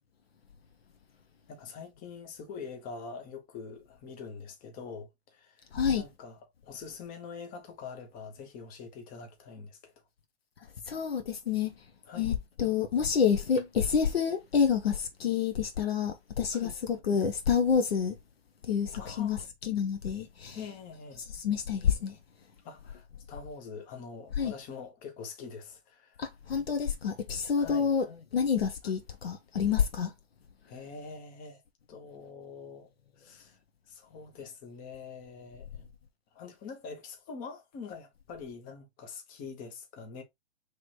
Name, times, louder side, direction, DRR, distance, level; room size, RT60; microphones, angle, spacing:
voice 1, 1.5-5.7 5.9-9.9 12.1-12.3 16.5-16.7 18.9-19.4 20.5-21.2 22.6-26.2 27.5-27.9 30.7-31.6 31.9-32.9 33.2-33.6 33.9-35.8 36.3-40.2, left 5 dB, 25° left, 1.0 m, -44 dB
voice 2, 5.7-6.0 10.9-11.7 12.2-18.2 18.6-20.6 21.3-22.2 24.4-24.5 26.2-28.1 28.3-30.1, left 7 dB, 65° left, 1.0 m, -28 dB
3.3 x 2.9 x 4.2 m
figure-of-eight pair, 110°, 33 cm